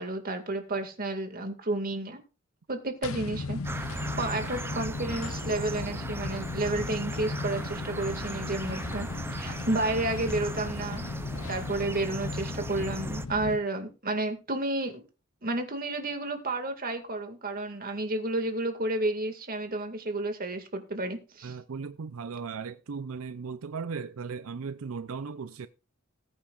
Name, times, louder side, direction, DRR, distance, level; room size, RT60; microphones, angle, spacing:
voice 1, 0.0-2.2 2.7-11.1 11.5-15.0 15.4-21.6, right 2 dB, 45° right, 2.1 m, -31 dB
sound 1, 3.0-13.6, left 3 dB, 80° left, 0.8 m, -36 dB
sound 2, 3.6-13.3, right 2 dB, 10° right, 0.5 m, -39 dB
voice 2, 21.4-25.7, right 5 dB, 90° right, 0.6 m, -37 dB
20.0 x 8.7 x 2.5 m
head